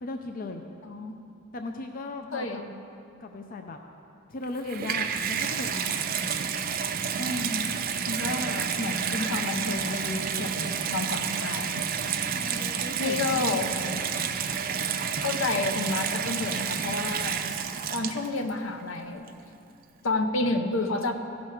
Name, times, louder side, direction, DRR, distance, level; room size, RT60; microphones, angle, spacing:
voice 1, 0.0-0.6 1.5-2.5 3.2-3.8 4.3-6.1 12.4-14.2, left 2 dB, 45° left, 5 dB, 0.5 m, -37 dB
voice 2, 0.8-1.2 2.3-2.7 7.2-11.8 13.0-13.7 15.2-17.4 17.9-19.3 20.0-21.1, left 2 dB, 75° left, 6 dB, 0.8 m, -30 dB
Water tap faucet / Bathtub (filling or washing), 4.4-18.5 19.3-19.4, right 7 dB, 45° right, 0.5 m, -30 dB
15.5 x 6.1 x 4.8 m, 2.6 s
head